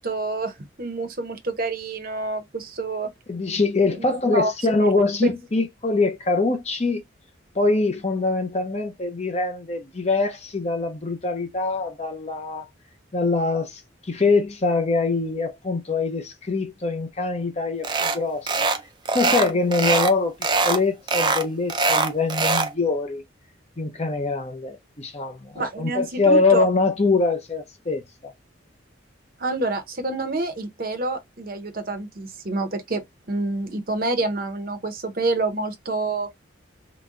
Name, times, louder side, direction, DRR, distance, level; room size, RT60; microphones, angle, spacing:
voice 1, 0.0-3.1 3.8-4.5 25.5-26.7 29.4-33.0 33.3-36.3, right 2 dB, 45° right, 0.8 m, -27 dB
voice 2, 3.3-7.0 7.5-12.6 13.1-18.6 19.1-20.3 20.6-23.2 23.8-28.3, left 3 dB, 35° left, 0.6 m, -23 dB
sound 1, 17.8-18.2 18.5-18.8 19.1-20.1 20.4-20.8 21.1-22.7, right 3 dB, 25° right, 0.4 m, -22 dB
3.9 x 2.2 x 3.6 m
head